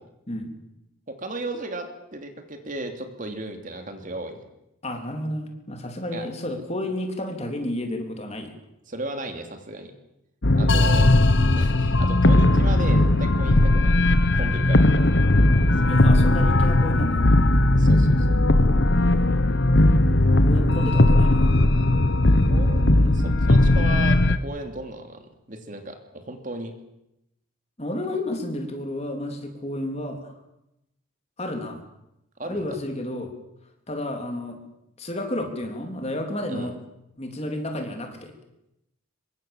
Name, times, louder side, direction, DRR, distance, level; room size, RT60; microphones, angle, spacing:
voice 1, 1.1-4.5 6.1-6.3 8.9-9.9 10.5-11.1 11.6-14.0 14.4-14.9 15.8-16.0 17.7-18.4 22.5-26.7 32.4-32.7 36.5-36.7, right 1 dB, 35° right, 5 dB, 2.9 m, -35 dB
voice 2, 4.8-8.5 15.9-17.2 20.4-21.5 27.8-30.3 31.4-31.8 32.4-33.3 33.9-34.6 35.0-36.8 37.2-38.3, left 1 dB, 30° left, 4 dB, 3.4 m, -31 dB
sound 1, 10.4-24.4, left 1 dB, 55° left, 1.2 m, -18 dB
26.0 x 23.0 x 7.3 m, 0.86 s
head